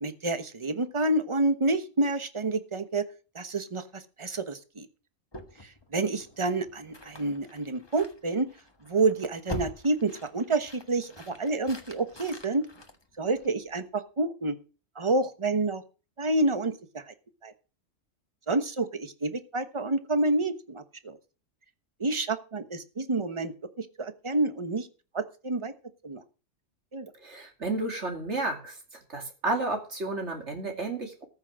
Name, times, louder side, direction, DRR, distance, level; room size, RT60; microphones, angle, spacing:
voice 1, 0.0-3.1 3.3-4.9 5.9-8.5 8.8-12.7 13.2-14.6 15.0-15.8 16.2-17.1 17.4-17.5 18.5-21.2 22.0-24.9 25.1-25.7 26.0-26.2 26.9-27.1, right 2 dB, 25° right, 10 dB, 1.1 m, -28 dB
sound 1, 5.3-13.8, left 2 dB, 20° left, 1.3 m, -45 dB
voice 2, 27.2-28.8 29.1-31.2, right 2 dB, 65° right, 3 dB, 2.8 m, -31 dB
14.0 x 6.4 x 6.2 m, 0.35 s
omnidirectional pair, 1.3 m